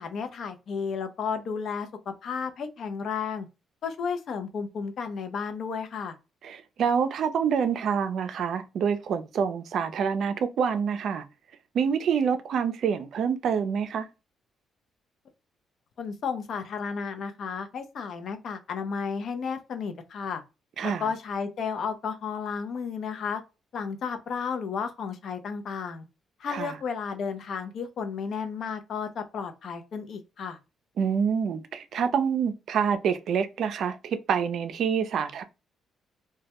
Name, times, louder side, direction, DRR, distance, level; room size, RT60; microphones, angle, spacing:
voice 1, 0.0-3.5 3.8-6.1 16.0-20.4 20.8-23.4 23.7-26.0 26.4-30.6, left 6 dB, 60° left, 0.5 m, -33 dB
voice 2, 6.4-11.2 11.7-14.1 20.8-21.1 26.5-26.8 31.0-35.4, right 7 dB, 70° right, 0.4 m, -27 dB
2.2 x 2.1 x 2.8 m
cardioid pair, 90°, 0 cm